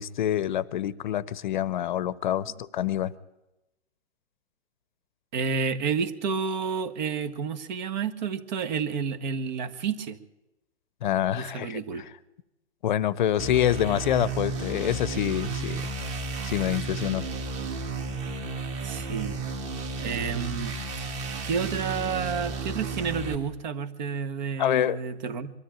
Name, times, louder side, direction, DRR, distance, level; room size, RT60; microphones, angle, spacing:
voice 1, 0.0-3.1 11.0-11.8 12.8-15.9 16.4-17.3 24.6-25.0, left 11 dB, 45° left, 18 dB, 0.9 m, -26 dB
voice 2, 5.3-10.2 11.3-12.0 18.8-19.4 20.0-20.7 21.4-25.5, right 6 dB, 40° right, 11 dB, 1.6 m, -30 dB
sound 1, 13.4-23.3, right 3 dB, 20° right, 2.0 m, -33 dB
23.5 x 13.5 x 9.0 m, 0.97 s
hypercardioid pair, 150°, 34 cm